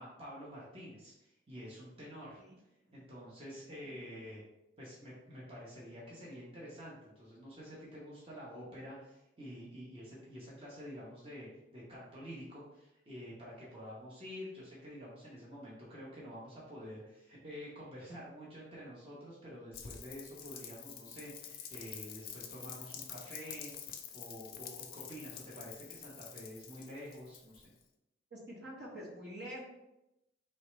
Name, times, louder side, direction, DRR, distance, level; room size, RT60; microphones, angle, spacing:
voice 1, 0.0-2.4 2.9-4.4 4.8-23.7 24.1-27.7, equal, 30° right, -6 dB, 0.9 m, -48 dB
voice 2, 3.9-4.2 28.3-29.6, equal, 60° right, -4 dB, 1.3 m, -47 dB
Rain, 19.7-27.8, left 8 dB, 50° left, 0.5 m, -48 dB
4.3 x 3.3 x 3.2 m, 0.90 s
head